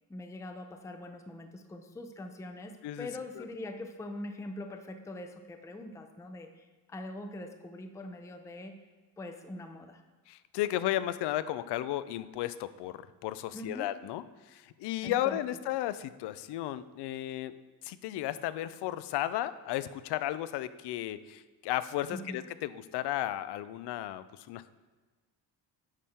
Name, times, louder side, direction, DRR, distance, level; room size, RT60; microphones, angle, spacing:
voice 1, 0.1-8.7 9.2-10.0 13.5-13.9 15.0-15.4 22.1-22.4, left 1 dB, 10° left, 6 dB, 0.5 m, -43 dB
voice 2, 10.3-17.5 17.8-24.7, left 13 dB, 75° left, 14 dB, 0.5 m, -34 dB
9.7 x 3.6 x 4.3 m, 1.3 s
cardioid pair, 100°, 40 cm